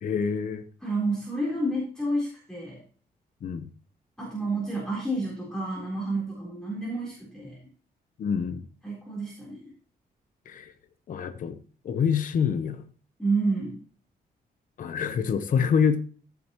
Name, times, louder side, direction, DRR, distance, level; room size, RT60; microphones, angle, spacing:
voice 1, 0.0-0.6 3.4-3.6 8.2-8.6 10.5-10.7 11.1-11.6 11.8-12.8 14.8-16.0, left 7 dB, 55° left, 0.9 m, -26 dB
voice 2, 0.8-2.8 4.2-7.6 8.8-9.7 13.2-13.8, right 2 dB, 5° left, 3.9 m, -29 dB
15.0 x 7.0 x 3.1 m
wide cardioid pair, 160°, 16 cm